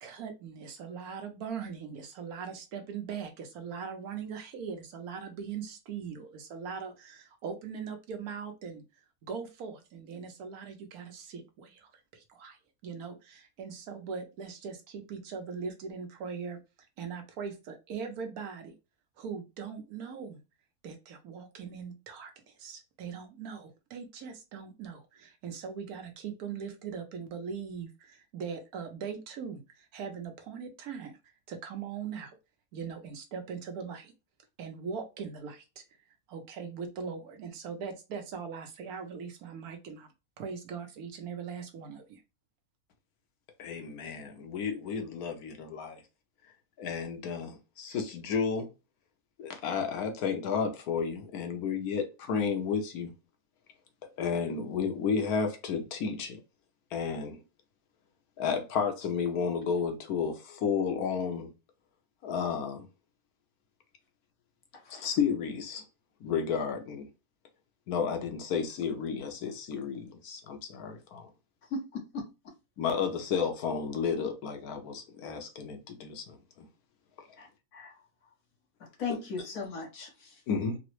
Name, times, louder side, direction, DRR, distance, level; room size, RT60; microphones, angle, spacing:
voice 1, 0.0-8.8 9.2-16.6 17.0-18.7 19.2-20.4 20.8-31.2 31.5-32.3 32.7-34.1 34.6-35.8 36.3-40.1 40.4-42.2, right 6 dB, 85° right, 1.2 m, -40 dB
voice 2, 43.6-46.0 46.8-48.7 49.4-53.1 54.2-56.4 56.9-57.4 58.4-61.5 62.2-62.9 64.9-65.8 66.2-67.1 67.9-71.3 72.8-76.7 80.5-80.8, left 6 dB, 85° left, 1.2 m, -32 dB
voice 3, 64.7-65.1 71.7-72.2 77.4-78.0 79.0-80.4, left 4 dB, 70° left, 1.4 m, -38 dB
3.8 x 2.1 x 3.0 m
omnidirectional pair, 1.5 m